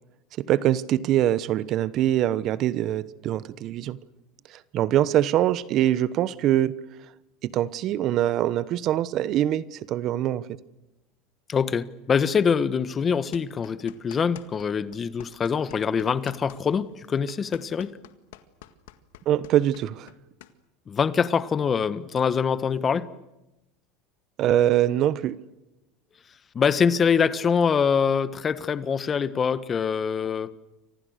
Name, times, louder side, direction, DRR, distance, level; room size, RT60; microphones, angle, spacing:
voice 1, 0.4-4.0 4.7-6.7 7.4-10.4 19.3-20.1 24.4-25.4, right 12 dB, 50° right, 1.1 m, -23 dB
voice 2, 11.5-17.9 20.9-23.2 26.5-30.5, left 6 dB, 30° left, 1.4 m, -24 dB
sound 1, 13.3-14.7 14.9-20.5, left 14 dB, 85° left, 1.8 m, -47 dB
29.5 x 25.5 x 6.6 m
supercardioid pair, 100°, 0 cm